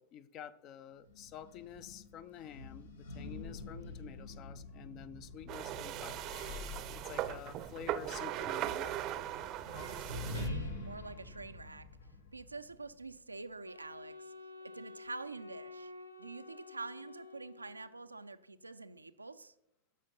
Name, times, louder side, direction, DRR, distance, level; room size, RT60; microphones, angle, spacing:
voice 1, 0.0-6.3 7.0-9.0, left 9 dB, 35° left, 15 dB, 0.6 m, -49 dB
sound 1, 1.0-13.2, left 2 dB, 65° left, 1.7 m, -46 dB
sound 2, 5.5-10.5, right 13 dB, 40° right, 0.7 m, -39 dB
voice 2, 9.9-11.9 12.3-14.3 14.6-15.9 16.2-19.5, right 3 dB, 80° right, 11 dB, 0.5 m, -46 dB
Wind instrument woodwind instrument, 13.6-18.1, left 3 dB, 90° left, 0.9 m, -51 dB
15.0 x 5.8 x 5.5 m, 0.83 s
figure-of-eight pair, 90°, 0 cm